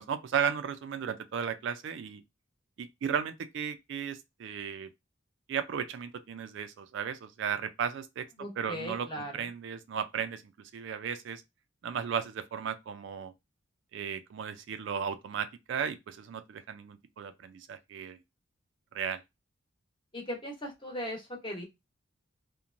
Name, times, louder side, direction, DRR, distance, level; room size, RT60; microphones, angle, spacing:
voice 1, 0.0-2.2 2.8-4.9 5.5-8.3 8.6-10.4 10.7-11.4 11.8-13.3 13.9-18.2 18.9-19.2, right 7 dB, 60° right, 0.3 m, -35 dB
voice 2, 8.4-9.5 20.1-21.7, equal, 25° left, 0.9 m, -38 dB
2.9 x 2.1 x 2.5 m
head